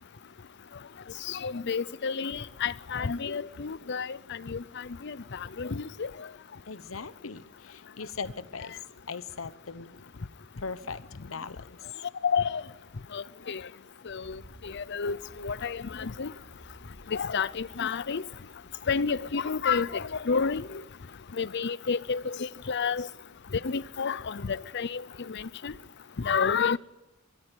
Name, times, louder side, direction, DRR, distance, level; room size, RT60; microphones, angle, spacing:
voice 1, 1.3-6.1 12.2-12.6 13.1-13.6 14.1-16.3 17.1-18.2 18.9-20.8 21.4-23.1 23.6-25.0 25.3-25.7 26.2-26.8, left 5 dB, 60° left, 0.7 m, -30 dB
voice 2, 6.7-8.8 9.1-10.1 10.6-11.8, left 5 dB, 85° left, 1.0 m, -39 dB
sound 1, 14.2-18.4 18.6-20.8, right 1 dB, 90° right, 4.2 m, -55 dB
23.0 x 14.5 x 9.7 m
head